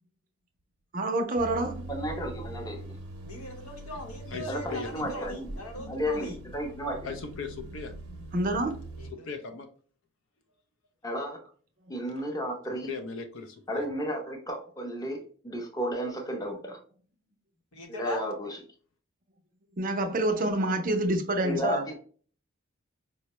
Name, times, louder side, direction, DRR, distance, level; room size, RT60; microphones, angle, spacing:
voice 1, 0.9-1.9 5.7-6.1 8.3-8.7 19.8-21.8, right 1 dB, 35° right, 5 dB, 0.5 m, -27 dB
sound 1, 1.4-9.1, right 2 dB, 75° right, 0.7 m, -42 dB
voice 2, 1.9-3.0 4.5-5.6 5.9-7.1 11.0-11.4 11.9-12.9 13.7-16.8 17.9-18.6 21.4-21.9, equal, 15° left, 2 dB, 0.6 m, -33 dB
voice 3, 3.2-6.4 9.0-9.3 17.7-18.2, left 1 dB, 75° left, 2 dB, 0.9 m, -40 dB
voice 4, 4.3-5.1 7.0-7.9 9.1-9.7 12.8-13.9, left 5 dB, 55° left, 6 dB, 0.4 m, -38 dB
4.4 x 2.1 x 2.9 m, 0.43 s
head